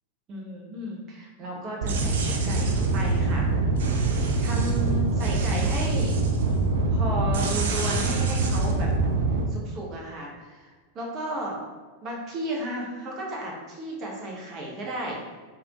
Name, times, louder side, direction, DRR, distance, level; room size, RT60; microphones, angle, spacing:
voice 1, 0.3-3.5 4.4-6.2 6.9-8.9 9.5-11.6 12.0-15.2, right 1 dB, 30° right, -3 dB, 0.8 m, -34 dB
sound 1, 1.8-9.4, right 3 dB, 60° right, 0.4 m, -24 dB
3.3 x 2.4 x 2.9 m, 1.4 s
figure-of-eight pair, 90°, 0 cm